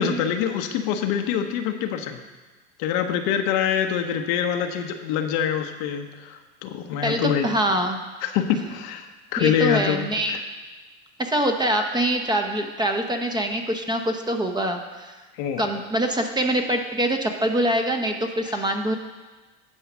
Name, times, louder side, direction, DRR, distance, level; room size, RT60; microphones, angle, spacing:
voice 1, 0.0-2.2 2.8-7.5 8.2-10.4 15.4-15.7 18.4-18.5, left 8 dB, 70° left, 6 dB, 1.0 m, -25 dB
voice 2, 7.0-8.0 9.4-10.4 11.2-15.1 15.6-18.9, right 1 dB, 10° right, 4 dB, 0.9 m, -24 dB
10.0 x 4.9 x 6.1 m, 1.3 s
supercardioid pair, 105°, 34 cm